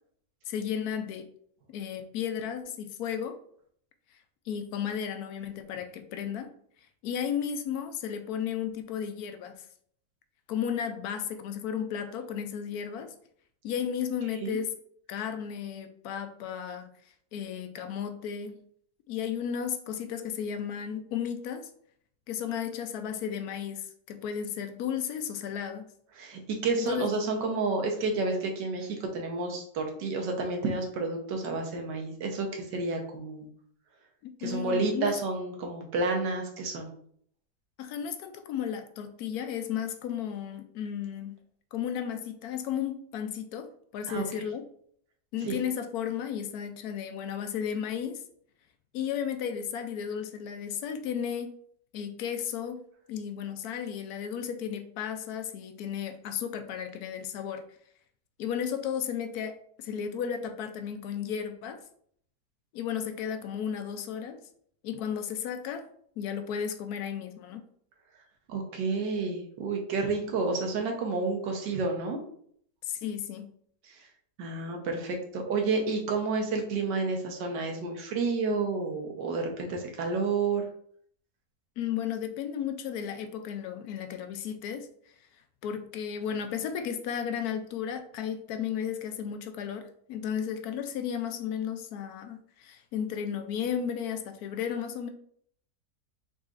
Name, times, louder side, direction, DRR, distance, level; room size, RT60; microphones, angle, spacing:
voice 1, 0.5-1.3 1.7-3.4 4.5-6.5 7.0-9.7 10.5-13.1 13.6-14.7 15.1-16.9 17.3-18.6 19.1-21.7 22.3-25.9 26.8-27.1 34.2-35.2 37.8-41.4 41.7-44.6 45.3-48.2 48.9-51.5 51.9-52.8 53.1-57.6 58.4-61.8 62.7-64.4 64.8-65.9 66.2-67.6 72.8-73.5 81.8-84.9 85.6-95.1, left 8 dB, 70° left, 7 dB, 1.0 m, -34 dB
voice 2, 26.2-33.5 34.4-36.9 44.1-44.2 45.4-45.6 68.5-72.2 74.4-80.7, right 3 dB, 85° right, 2 dB, 1.5 m, -30 dB
4.8 x 4.0 x 2.5 m, 0.63 s
omnidirectional pair, 1.8 m